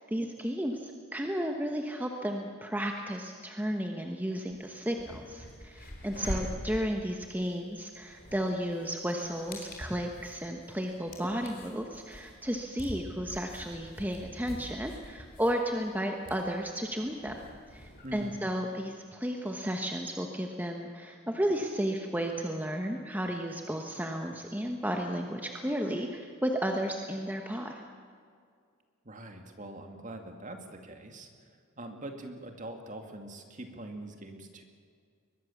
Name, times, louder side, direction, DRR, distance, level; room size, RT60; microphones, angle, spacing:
voice 1, 0.0-17.3 17.7-27.7, equal, 10° right, 3 dB, 1.2 m, -33 dB
sound 1, 4.5-4.6 4.9-18.3, equal, 45° left, 4.2 m, -45 dB
voice 2, 6.1-6.4 18.0-18.4 29.0-31.3 31.8-34.6, right 1 dB, 35° right, 5 dB, 2.3 m, -43 dB
23.0 x 20.5 x 7.2 m, 2.2 s
head